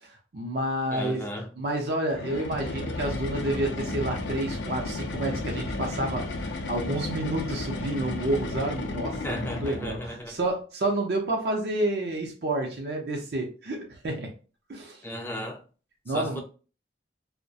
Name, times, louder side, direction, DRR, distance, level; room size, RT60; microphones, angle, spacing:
voice 1, 0.0-1.3 1.6-14.3 14.7-15.0 16.1-16.4, right 1 dB, 55° right, 0.5 m, -30 dB
voice 2, 0.9-1.5 9.2-10.3 15.0-15.6 16.1-16.4, left 1 dB, 10° left, 0.3 m, -35 dB
sound 1, 2.1-10.2, left 2 dB, 80° left, 0.4 m, -33 dB
2.3 x 2.1 x 2.7 m
head